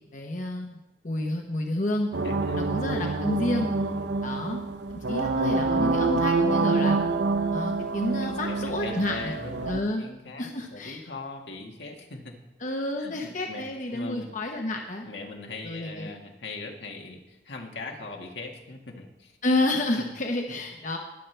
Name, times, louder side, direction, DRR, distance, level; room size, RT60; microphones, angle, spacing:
voice 1, 0.1-0.8 1.0-2.1 2.6-3.7 4.2-4.6 4.9-7.0 7.5-9.3 9.7-10.1 10.4-11.0 12.6-15.1 15.6-16.1 19.4-21.0, left 1 dB, 45° left, 2 dB, 1.0 m, -30 dB
sound 1, 2.1-9.8, right 3 dB, 75° right, 0.6 m, -26 dB
voice 2, 2.2-2.8 3.7-4.1 8.2-12.4 13.0-13.6 13.9-14.3 15.0-19.3, left 3 dB, 85° left, 1 dB, 1.8 m, -40 dB
20.0 x 7.5 x 3.4 m, 0.99 s
head